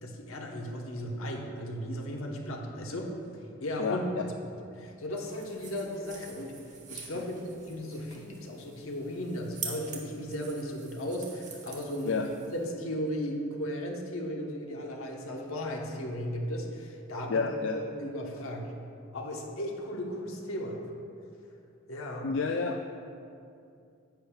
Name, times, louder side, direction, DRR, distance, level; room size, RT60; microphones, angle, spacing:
voice 1, 0.0-3.1 3.6-4.3 4.7-6.5 6.9-12.2 12.5-17.5 18.0-18.7 19.1-20.8 21.9-22.3, equal, 80° left, 0 dB, 1.1 m, -36 dB
voice 2, 3.8-4.2 7.1-7.2 12.1-12.3 17.3-17.8 22.2-22.9, left 4 dB, 60° left, 3 dB, 0.4 m, -30 dB
sound 1, 5.2-12.7, right 5 dB, 35° right, 1.0 m, -46 dB
10.5 x 8.7 x 2.4 m, 2.5 s
head